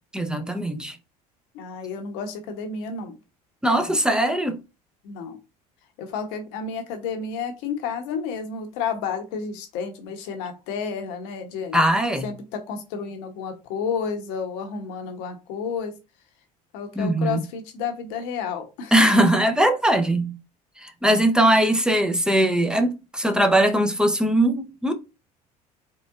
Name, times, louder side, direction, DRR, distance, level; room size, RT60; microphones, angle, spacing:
voice 1, 0.1-1.0 3.6-4.6 11.7-12.3 17.0-17.4 18.9-20.4 20.8-24.9, right 1 dB, 5° right, 0.8 m, -20 dB
voice 2, 1.5-3.2 5.0-5.4 6.0-11.8 12.2-15.9 16.7-19.1, left 6 dB, 65° left, 1.0 m, -31 dB
3.9 x 3.5 x 2.5 m
hypercardioid pair, 65°, 20 cm